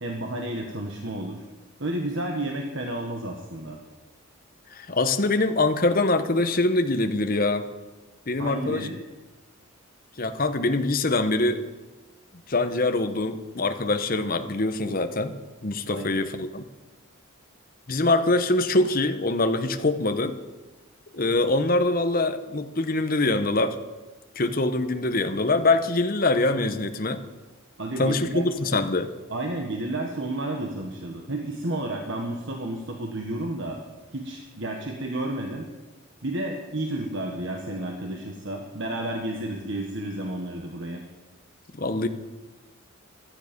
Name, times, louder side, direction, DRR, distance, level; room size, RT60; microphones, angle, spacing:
voice 1, 0.0-1.4 1.8-3.8 8.4-8.9 15.9-16.1 27.8-28.8 29.3-33.8 34.1-35.7 36.2-41.0, right 1 dB, 60° right, 2 dB, 1.4 m, -31 dB
voice 2, 4.7-7.7 8.3-8.9 10.2-11.6 12.5-15.4 15.6-16.6 17.9-20.4 21.1-23.8 24.4-27.2 28.0-29.1 41.7-42.1, left 2 dB, 40° left, 9 dB, 0.9 m, -24 dB
16.0 x 12.0 x 5.2 m, 1.2 s
head